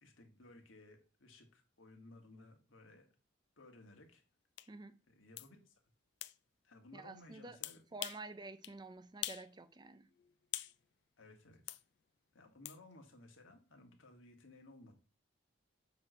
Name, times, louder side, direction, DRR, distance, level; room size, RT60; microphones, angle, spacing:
voice 1, 0.0-3.1 3.6-4.2 5.1-5.7 6.6-7.8 11.2-11.8 12.3-14.9, left 2 dB, 85° left, 1.6 m, -59 dB
sound 1, 4.6-4.7 5.4-5.5 6.2-6.4 7.6-8.3 8.6-8.8 9.2-9.5 9.8-10.8 11.7-11.8 12.6-12.8, left 15 dB, 60° left, 0.3 m, -43 dB
voice 2, 4.7-5.0 6.9-7.6 7.9-10.1, right 3 dB, 20° right, 0.4 m, -49 dB
7.4 x 3.1 x 6.2 m
head